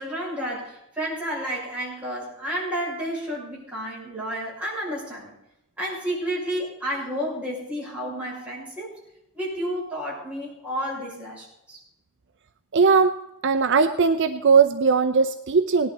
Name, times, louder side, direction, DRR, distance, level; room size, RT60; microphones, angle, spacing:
voice 1, 0.0-5.3 5.8-8.9 9.3-11.8, equal, 5° right, -7 dB, 6.5 m, -31 dB
voice 2, 12.7-13.1 13.4-15.9, right 5 dB, 55° right, 8 dB, 0.6 m, -19 dB
18.5 x 11.5 x 4.1 m, 0.85 s
head